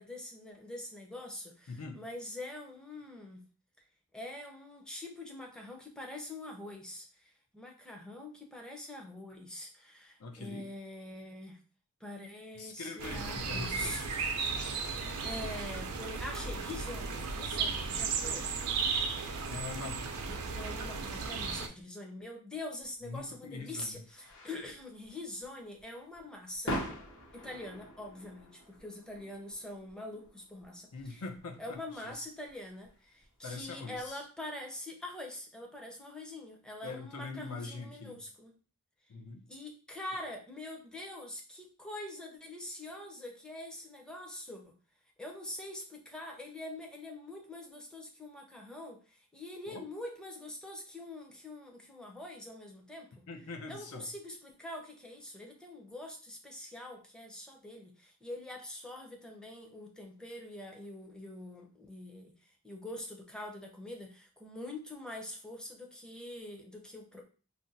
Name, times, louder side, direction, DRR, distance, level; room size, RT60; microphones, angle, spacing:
voice 1, 0.0-3.4 4.1-11.6 12.0-18.5 20.3-26.8 27.3-31.2 31.6-38.5 39.5-44.7 45.2-53.1 53.7-67.2, left 1 dB, 5° left, 1 dB, 0.5 m, -44 dB
voice 2, 1.7-2.0 10.2-10.7 12.6-14.1 19.4-20.0 23.0-23.9 30.9-31.8 32.0-32.2 33.4-34.2 36.8-38.2 39.1-39.4 49.7-49.8 53.3-54.1, left 3 dB, 85° left, 4 dB, 0.6 m, -43 dB
sound 1, 13.0-21.7, right 5 dB, 90° right, 0.5 m, -35 dB
sound 2, 22.8-34.1, equal, 60° left, 0.9 m, -45 dB
2.6 x 2.1 x 3.9 m, 0.37 s
head